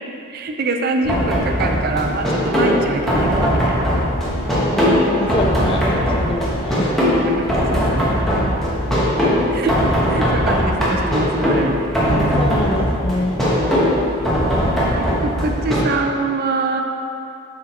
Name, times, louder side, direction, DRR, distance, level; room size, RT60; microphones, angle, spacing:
voice 1, 0.3-3.8 7.2-8.2 9.5-9.8 10.1-11.8 12.1-12.7 15.2-16.8, right 3 dB, 45° right, 4 dB, 0.4 m, -24 dB
sound 1, 1.0-15.8, equal, ahead, 1.0 m, -19 dB
voice 2, 4.5-6.9 12.1-13.4, left 1 dB, 25° left, 3 dB, 0.4 m, -25 dB
6.2 x 4.7 x 4.3 m, 2.7 s
head